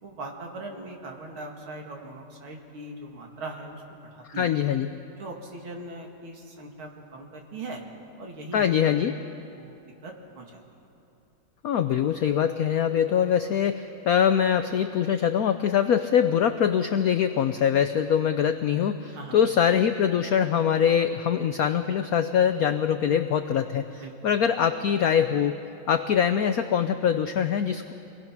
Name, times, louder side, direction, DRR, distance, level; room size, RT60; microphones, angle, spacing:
voice 1, 0.0-4.5 5.2-7.8 8.2-8.7 9.5-10.6 19.1-19.4 24.0-24.3, right 2 dB, 75° right, 1 dB, 2.9 m, -40 dB
voice 2, 4.2-4.9 8.5-9.2 11.6-25.6 25.9-27.9, left 8 dB, 90° left, 9 dB, 0.7 m, -23 dB
25.0 x 19.5 x 5.9 m, 2.8 s
omnidirectional pair, 2.3 m